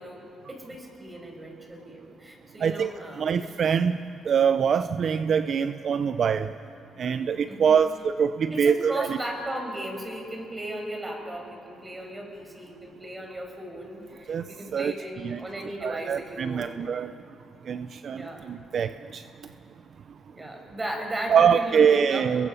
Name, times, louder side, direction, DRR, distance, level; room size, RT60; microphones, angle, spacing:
voice 1, 0.0-3.3 7.5-7.8 8.5-16.8 18.1-18.4 20.3-22.3, right 1 dB, 20° right, 2 dB, 5.5 m, -36 dB
voice 2, 3.2-4.0 4.3-6.5 7.0-9.2 14.3-14.9 15.2-15.4 15.8-17.1 17.7-19.2 21.3-22.5, right 7 dB, 55° right, 11 dB, 0.5 m, -24 dB
30.0 x 22.0 x 5.7 m, 2.7 s
cardioid pair, 90°, 0 cm